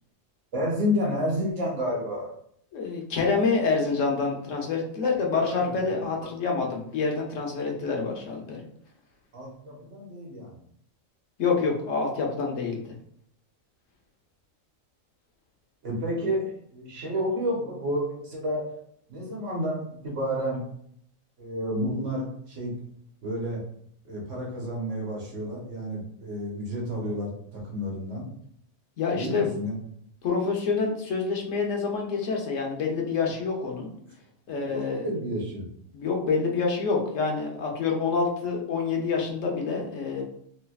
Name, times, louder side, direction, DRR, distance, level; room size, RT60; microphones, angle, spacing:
voice 1, 0.5-2.3 5.0-5.7 9.3-10.6 15.8-18.7 19.1-20.6 21.4-22.7 23.2-23.6 24.0-28.3 29.1-29.7 33.8-33.9 34.5-35.7, equal, 70° right, -3 dB, 1.4 m, -30 dB
voice 2, 2.7-8.7 11.4-12.9 29.0-29.5 30.2-33.9 34.5-35.1 35.9-40.2, left 4 dB, 75° left, 0 dB, 1.1 m, -27 dB
3.3 x 3.2 x 2.3 m, 0.67 s
omnidirectional pair, 1.4 m